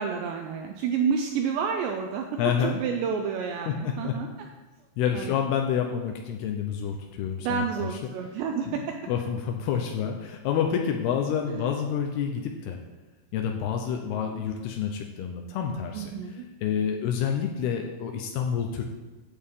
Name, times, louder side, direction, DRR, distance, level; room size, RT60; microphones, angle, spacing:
voice 1, 0.0-2.3 2.6-4.3 5.1-5.4 7.4-8.9 11.5-11.7 15.9-16.5, right 6 dB, 80° right, 3 dB, 2.6 m, -29 dB
voice 2, 2.4-2.8 3.7-4.1 5.0-8.1 8.7-8.8 9.1-12.8 13.3-16.1 16.6-18.8, left 8 dB, 85° left, 3 dB, 2.3 m, -28 dB
15.5 x 8.7 x 3.7 m, 1.2 s
omnidirectional pair, 5.6 m